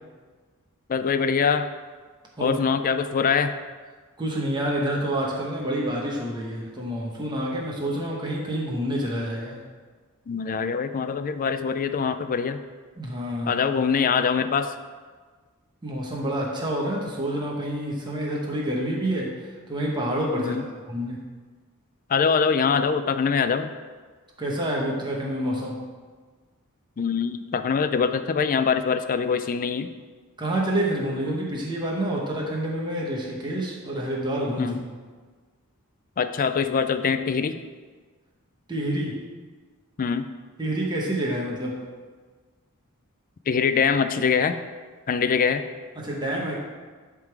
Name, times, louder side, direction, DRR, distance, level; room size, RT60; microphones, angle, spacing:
voice 1, 0.9-1.7 2.4-3.5 10.3-12.6 13.5-14.7 20.4-20.6 22.1-23.7 27.0-29.9 34.6-34.8 36.2-37.6 40.0-40.3 43.5-44.6 45.1-45.6, left 6 dB, 40° left, 10 dB, 0.4 m, -23 dB
voice 2, 4.2-9.6 13.0-13.5 15.8-21.2 24.4-25.8 30.4-34.8 38.7-39.2 40.6-41.8 46.0-46.6, right 1 dB, 20° right, -3 dB, 1.0 m, -28 dB
11.0 x 3.7 x 4.7 m, 1.5 s
head